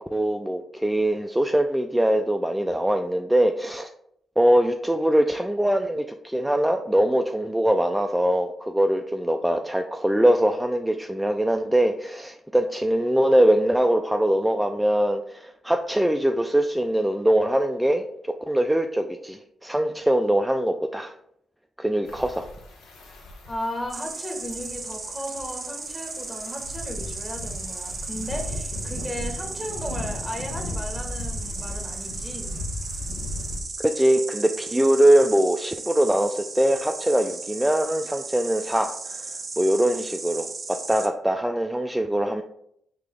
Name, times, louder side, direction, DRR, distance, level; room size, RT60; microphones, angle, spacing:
voice 1, 0.0-3.9 4.4-21.1 21.8-22.5 33.8-39.3 39.6-42.4, right 1 dB, 10° right, 5 dB, 0.3 m, -22 dB
sound 1, 22.1-33.6, left 2 dB, 85° left, 0.6 m, -36 dB
voice 2, 23.5-32.5, left 1 dB, 20° left, 1 dB, 1.3 m, -35 dB
Insect, 23.9-41.1, right 3 dB, 45° right, 0.7 m, -36 dB
3.6 x 2.8 x 3.5 m, 0.70 s
supercardioid pair, 45°, 0 cm